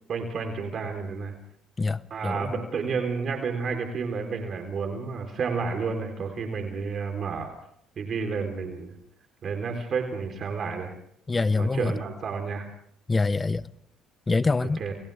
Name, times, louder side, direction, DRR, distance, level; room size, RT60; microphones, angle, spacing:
voice 1, 0.1-1.3 2.1-7.6 8.0-8.9 9.4-10.9 11.6-12.7 14.6-14.9, right 5 dB, 50° right, 3.8 m, -31 dB
voice 2, 1.8-2.6 11.3-11.9 13.1-13.6 14.3-14.8, left 3 dB, 25° left, 0.9 m, -25 dB
28.5 x 28.0 x 3.5 m
supercardioid pair, 80°, 0 cm